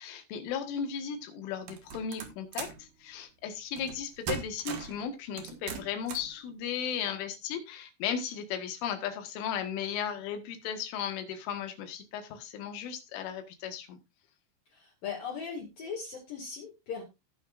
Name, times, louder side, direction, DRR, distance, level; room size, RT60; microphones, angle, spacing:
voice 1, 0.0-14.0, left 8 dB, 75° left, 7 dB, 3.9 m, -36 dB
sound 1, 1.7-2.8 3.8-4.0 4.3-5.0 5.4-6.3, right 7 dB, 60° right, 2.9 m, -38 dB
voice 2, 14.7-17.0, left 6 dB, 55° left, -2 dB, 3.2 m, -39 dB
18.0 x 6.4 x 2.5 m, 0.23 s
omnidirectional pair, 5.8 m